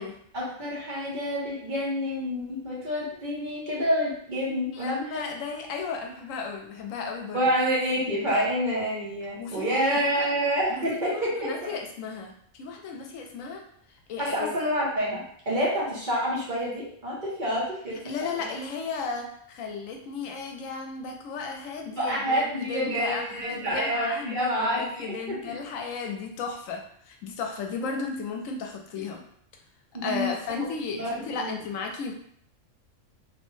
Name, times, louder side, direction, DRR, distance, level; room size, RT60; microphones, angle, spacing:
voice 1, 0.3-5.3 7.3-11.5 14.2-18.0 18.4-18.5 22.0-25.6 29.9-30.3 30.9-31.5, equal, 45° right, -6 dB, 0.9 m, -28 dB
voice 2, 4.7-7.4 9.4-10.3 10.7-13.6 14.1-14.5 18.0-26.8 27.1-29.2 30.0-32.1, left 4 dB, 80° left, 2 dB, 1.0 m, -34 dB
3.2 x 2.1 x 3.1 m, 0.65 s
omnidirectional pair, 1.3 m